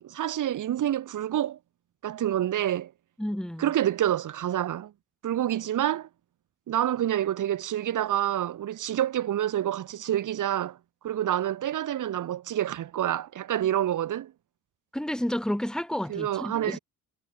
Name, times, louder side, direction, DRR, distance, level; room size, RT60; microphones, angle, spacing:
voice 1, 0.0-1.6 2.0-2.9 3.6-4.9 5.2-6.1 6.7-10.8 11.0-14.3 16.1-16.8, right 11 dB, 65° right, 4.9 m, -27 dB
voice 2, 3.2-3.7 14.9-16.8, equal, ahead, 5.3 m, -31 dB
cardioid pair, 145°, 33 cm